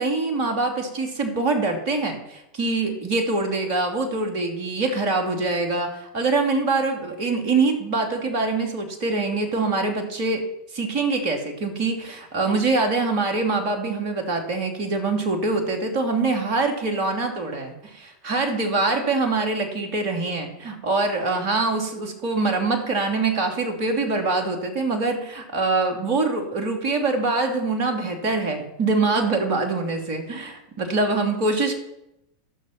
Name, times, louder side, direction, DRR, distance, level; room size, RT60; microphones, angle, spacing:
voice 1, 0.0-10.4 10.7-31.7, right 3 dB, 45° right, 3 dB, 2.8 m, -24 dB
14.0 x 6.7 x 5.9 m, 0.85 s
figure-of-eight pair, 85°, 0 cm